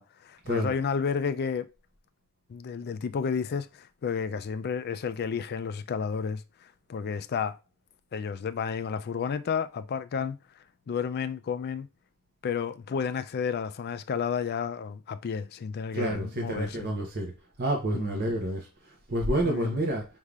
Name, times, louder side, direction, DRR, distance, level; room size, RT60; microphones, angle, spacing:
voice 1, 0.0-1.7 2.5-7.6 8.1-10.4 10.9-11.9 12.4-16.9 17.9-18.3 19.4-19.7, left 6 dB, 45° left, 0.3 m, -31 dB
voice 2, 15.9-17.3 17.6-20.1, right 1 dB, 45° right, 0.8 m, -29 dB
5.4 x 3.3 x 2.4 m
head